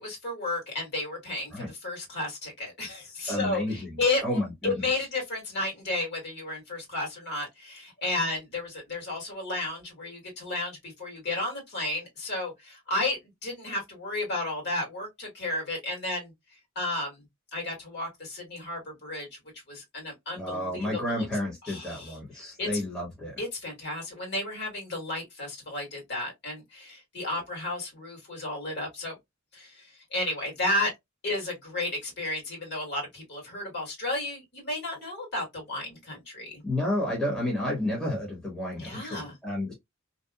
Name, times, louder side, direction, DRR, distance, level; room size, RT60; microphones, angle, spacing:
voice 1, 0.0-16.3 16.8-17.2 17.5-19.3 19.7-21.3 21.6-22.2 22.6-22.8 23.4-29.2 29.5-30.9 31.2-36.6 38.8-39.4, left 2 dB, 50° left, 1.7 m, -33 dB
voice 2, 3.3-5.0 20.3-23.3 36.6-39.7, left 1 dB, 5° left, 1.1 m, -31 dB
2.8 x 2.3 x 2.2 m
head